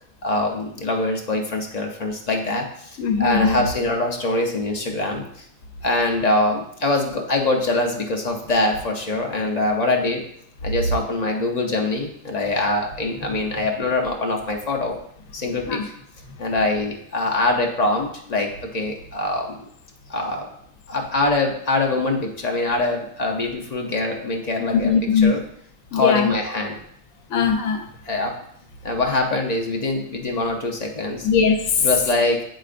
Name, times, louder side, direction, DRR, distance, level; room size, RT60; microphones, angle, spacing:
voice 1, 0.2-5.4 5.8-10.2 10.6-15.0 15.3-15.9 16.4-19.7 20.1-20.5 20.9-25.4 25.9-26.8 28.0-28.4 28.8-31.3 31.8-32.4, left 2 dB, 40° left, 1 dB, 0.7 m, -23 dB
voice 2, 3.0-3.6 15.7-15.8 24.7-25.4 25.9-26.3 27.3-27.8 31.2-31.8, left 6 dB, 75° left, 4 dB, 1.2 m, -20 dB
8.0 x 5.0 x 2.5 m, 0.70 s
omnidirectional pair, 1.4 m